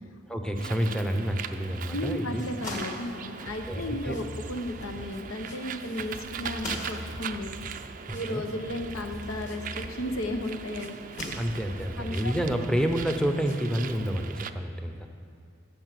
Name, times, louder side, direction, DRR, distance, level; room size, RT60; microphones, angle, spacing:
voice 1, 0.3-2.4 3.7-4.2 8.1-8.4 11.4-15.1, equal, 5° left, 4 dB, 0.7 m, -29 dB
Bird, 0.6-14.5, right 7 dB, 40° right, 0.4 m, -41 dB
voice 2, 1.9-7.5 8.1-11.0 12.0-12.3, left 1 dB, 85° left, 5 dB, 1.0 m, -34 dB
sound 1, 2.3-10.3 10.9-12.0, left 2 dB, 35° left, 2.0 m, -43 dB
sound 2, 3.5-14.1, left 1 dB, 60° left, 0.9 m, -43 dB
14.0 x 7.3 x 6.0 m, 2.4 s
head